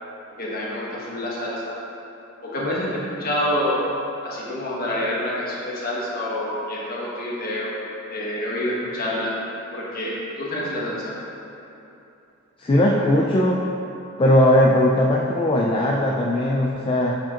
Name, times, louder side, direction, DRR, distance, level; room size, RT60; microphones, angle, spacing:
voice 1, 0.4-1.7 2.4-3.8 4.2-7.7 8.1-9.3 9.7-11.1, left 1 dB, 45° left, -5 dB, 1.1 m, -27 dB
voice 2, 12.6-13.6 14.2-17.1, left 1 dB, 25° left, -2 dB, 0.3 m, -18 dB
7.3 x 5.0 x 2.8 m, 2.8 s
head